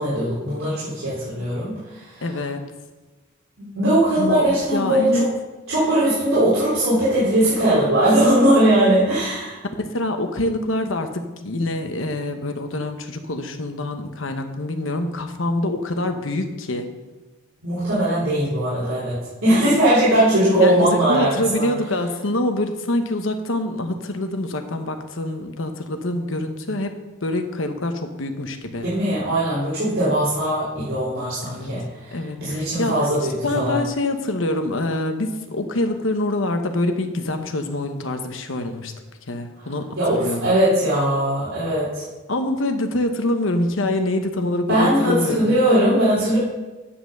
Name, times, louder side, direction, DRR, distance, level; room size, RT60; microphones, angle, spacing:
voice 1, 0.0-2.2 3.8-5.3 5.7-9.6 17.6-19.2 19.4-21.7 28.8-33.8 40.0-42.0 44.7-46.4, right 1 dB, 75° right, -11 dB, 3.9 m, -20 dB
voice 2, 2.2-2.6 4.2-5.3 9.8-16.9 20.6-26.9 27.2-28.9 31.4-31.7 32.1-33.1 33.4-38.9 39.3-40.5 42.3-45.5, left 1 dB, 70° left, 7 dB, 1.1 m, -25 dB
9.7 x 5.9 x 6.7 m, 1.2 s
head